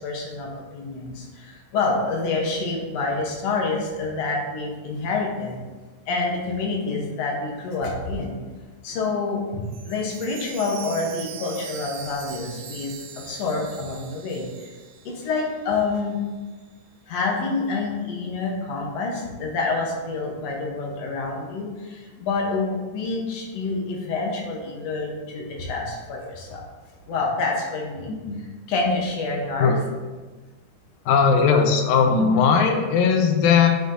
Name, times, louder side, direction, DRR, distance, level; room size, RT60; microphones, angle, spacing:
voice 1, 0.0-5.6 6.1-8.4 8.8-14.4 15.1-16.2 17.1-26.6 27.1-28.1 28.7-29.8 32.2-32.3, left 3 dB, 65° left, -1 dB, 1.8 m, -27 dB
Chime, 9.7-15.6 15.9-16.0 16.6-16.7, right 7 dB, 85° right, 2.5 m, -41 dB
voice 2, 28.1-28.4 29.6-29.8 31.1-33.7, left 6 dB, 85° left, 4 dB, 2.5 m, -18 dB
10.0 x 6.2 x 2.7 m, 1.3 s
omnidirectional pair, 4.1 m